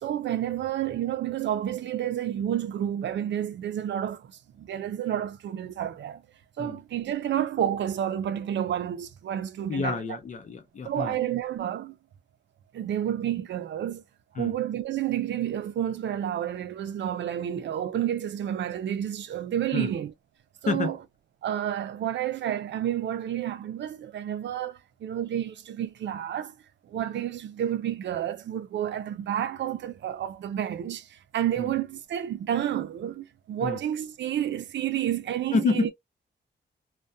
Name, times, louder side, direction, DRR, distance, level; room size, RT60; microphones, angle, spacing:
voice 1, 0.0-4.3 4.6-6.2 6.6-10.0 10.8-12.0 12.7-14.0 14.4-20.1 20.6-21.0 21.4-26.5 26.9-35.9, right 10 dB, 75° right, 0.5 m, -30 dB
voice 2, 9.7-11.2 14.4-14.5 19.7-19.9 20.7-20.9 31.6-31.7 33.6-33.8 35.5-35.9, left 4 dB, 45° left, 0.6 m, -28 dB
2.3 x 2.2 x 2.6 m
wide cardioid pair, 170°, 19 cm